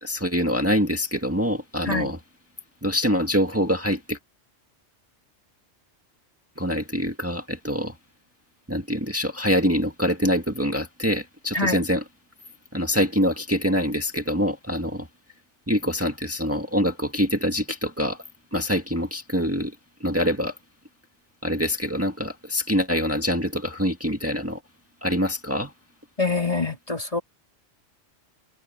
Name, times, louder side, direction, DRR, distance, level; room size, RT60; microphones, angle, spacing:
voice 1, 0.0-2.2 2.8-4.2 6.6-8.0 8.7-12.0 12.7-15.1 15.7-18.2 18.5-19.8 20.0-20.6 21.4-24.6 25.0-25.7, equal, 10° right, 1.9 m, -25 dB
voice 2, 26.2-27.2, left 3 dB, 30° left, 3.1 m, -25 dB
omnidirectional pair, 1.2 m